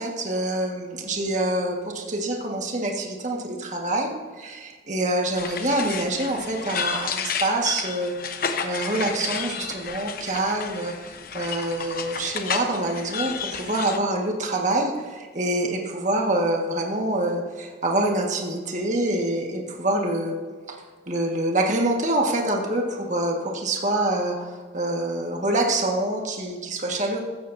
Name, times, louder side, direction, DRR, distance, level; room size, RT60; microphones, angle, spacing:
voice 1, 0.0-8.1 8.6-20.4 20.7-20.8 21.1-27.2, right 1 dB, 40° right, 0 dB, 1.7 m, -26 dB
sound 1, 5.4-14.0, left 6 dB, 50° left, 1.0 m, -31 dB
15.5 x 14.0 x 2.7 m, 1.5 s
head